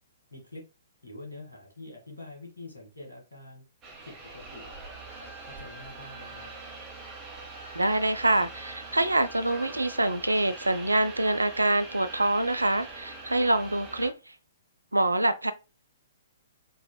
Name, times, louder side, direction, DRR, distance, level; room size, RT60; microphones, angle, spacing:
voice 1, 0.3-0.6 1.0-3.6 4.1-4.7 5.2-6.5, left 2 dB, 80° left, 1.3 m, -45 dB
sound 1, 3.8-14.1, right 3 dB, 20° right, 0.8 m, -43 dB
voice 2, 7.7-14.1 14.9-15.5, right 2 dB, 80° right, 0.3 m, -25 dB
3.9 x 2.4 x 2.2 m
figure-of-eight pair, 120°, 0 cm